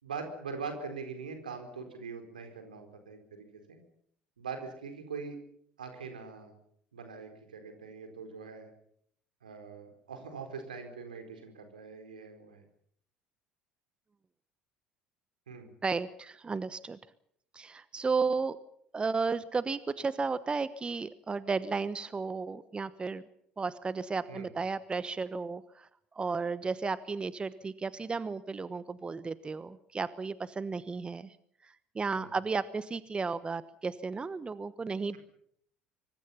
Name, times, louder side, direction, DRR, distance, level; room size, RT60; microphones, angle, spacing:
voice 1, 0.0-3.8 4.4-5.4 5.8-6.6 6.9-8.7 9.4-12.6 15.5-15.7 24.3-24.5 32.1-32.3, right 5 dB, 80° right, 6 dB, 4.5 m, -42 dB
voice 2, 15.8-17.0 17.5-18.6 18.9-23.2 23.6-25.9 26.1-31.4 31.6-35.2, right 4 dB, 25° right, 15 dB, 1.1 m, -33 dB
26.0 x 24.5 x 5.7 m, 0.68 s
figure-of-eight pair, 60°, 4 cm